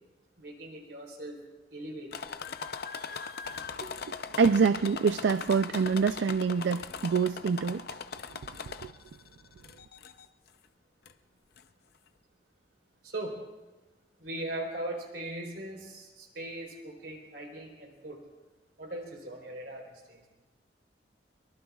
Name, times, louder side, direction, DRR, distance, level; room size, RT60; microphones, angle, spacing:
voice 1, 0.4-1.4 1.7-2.1 3.8-3.9 13.0-13.4 14.2-18.2 18.8-20.3, right 1 dB, 70° right, 3.6 m, -39 dB
sound 1, 2.1-9.1 9.6-10.3 11.1-11.2 11.6-11.7, left 5 dB, 60° left, 0.6 m, -40 dB
voice 2, 4.4-7.8 8.6-8.9, right 5 dB, 85° right, 0.4 m, -26 dB
23.5 x 23.5 x 2.4 m
head